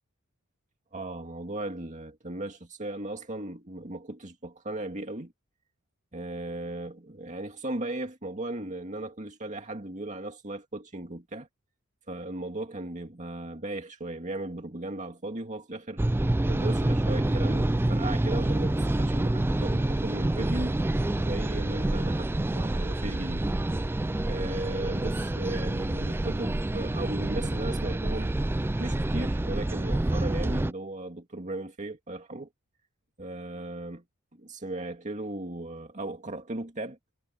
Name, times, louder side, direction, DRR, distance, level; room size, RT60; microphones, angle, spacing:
voice 1, 0.9-5.3 6.1-11.5 12.1-16.0 16.5-20.8 21.2-23.5 24.3-28.3 28.8-32.5 33.2-34.0 34.4-37.0, right 2 dB, 35° right, 2.2 m, -36 dB
sound 1, 16.0-30.7, right 1 dB, 10° right, 0.3 m, -27 dB
head